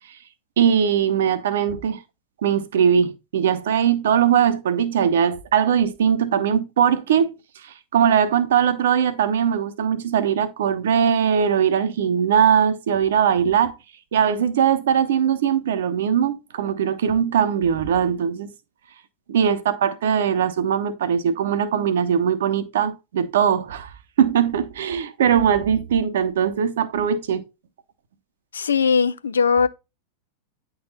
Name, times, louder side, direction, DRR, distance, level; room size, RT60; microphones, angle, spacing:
voice 1, 0.6-2.0 2.4-7.3 7.6-13.7 14.1-18.5 19.3-23.9 24.2-27.4, right 8 dB, 60° right, 1.0 m, -20 dB
voice 2, 28.5-29.7, left 5 dB, 70° left, 0.5 m, -19 dB
9.5 x 4.1 x 4.0 m
figure-of-eight pair, 90°, 0 cm